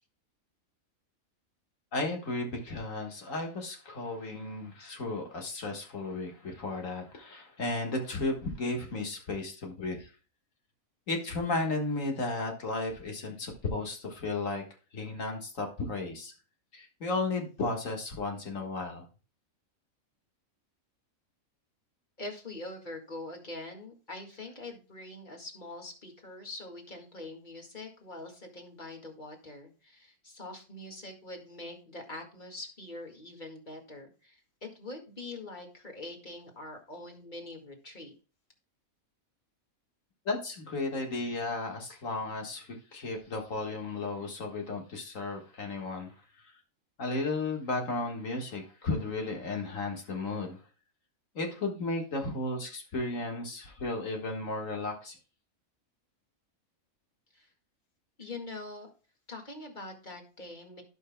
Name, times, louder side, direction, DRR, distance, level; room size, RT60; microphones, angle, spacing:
voice 1, 1.9-10.1 11.1-14.6 14.9-16.3 16.7-19.1 40.3-46.1 47.0-50.6 51.4-55.2, left 2 dB, 65° left, 2 dB, 2.0 m, -34 dB
voice 2, 22.2-38.1 57.3-57.5 58.2-58.9 59.3-60.8, left 2 dB, 35° left, 1 dB, 2.1 m, -44 dB
16.5 x 5.7 x 2.2 m, 0.35 s
omnidirectional pair, 1.5 m